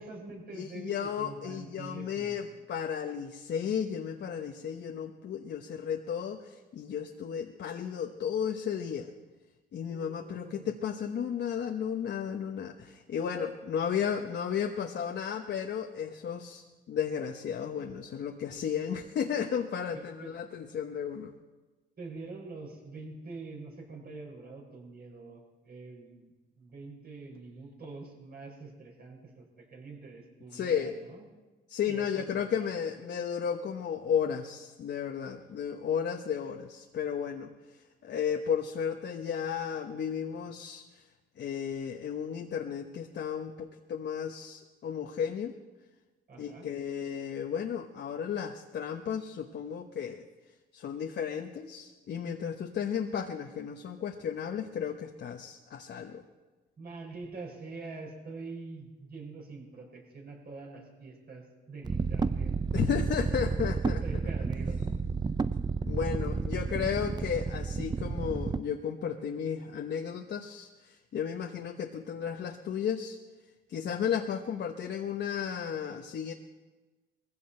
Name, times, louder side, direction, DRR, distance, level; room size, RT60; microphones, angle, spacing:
voice 1, 0.0-2.4 9.9-10.7 19.9-20.4 22.0-31.3 31.8-32.7 35.5-35.6 46.3-46.7 56.8-62.5 64.0-64.9, right 3 dB, 50° right, 0 dB, 5.9 m, -45 dB
voice 2, 0.5-9.1 9.7-21.3 30.5-30.9 31.7-37.5 38.0-41.0 41.4-45.5 46.4-50.2 50.7-56.2 62.7-64.0 65.8-73.2 73.7-76.3, left 8 dB, 60° left, 3 dB, 1.1 m, -34 dB
sound 1, 61.8-68.6, right 4 dB, 20° right, 0.5 m, -31 dB
20.5 x 15.5 x 4.4 m, 1.2 s
cardioid pair, 90°, 20 cm